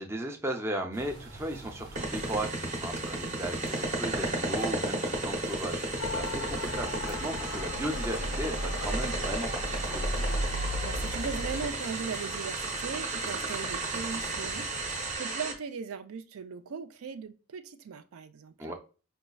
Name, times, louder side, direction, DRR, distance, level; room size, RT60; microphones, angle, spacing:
voice 1, 0.0-10.3 18.6-18.7, right 1 dB, 10° right, 0.4 m, -36 dB
sound 1, 0.9-15.2, right 2 dB, 65° right, 0.9 m, -46 dB
sound 2, 2.0-15.5, right 2 dB, 35° right, 0.8 m, -34 dB
Motor vehicle (road) / Siren, 6.0-11.7, left 1 dB, 60° left, 0.4 m, -34 dB
voice 2, 10.8-18.7, right 6 dB, 85° right, 0.4 m, -39 dB
5.1 x 2.3 x 2.2 m
head